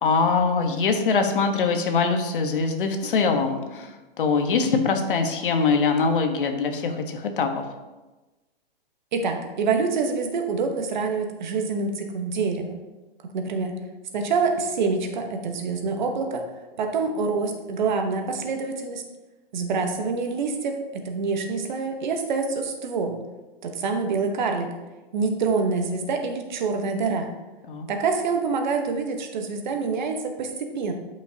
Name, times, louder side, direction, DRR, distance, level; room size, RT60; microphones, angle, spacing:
voice 1, 0.0-7.6 27.7-27.9, left 4 dB, 60° left, 5 dB, 1.2 m, -23 dB
voice 2, 9.1-12.8 13.3-13.7 14.1-16.4 16.8-19.0 19.5-23.2 23.6-24.7 25.1-27.3 27.9-30.9, right 4 dB, 50° right, 4 dB, 1.1 m, -26 dB
12.0 x 5.4 x 2.8 m, 1.1 s
hypercardioid pair, 170°, 30 cm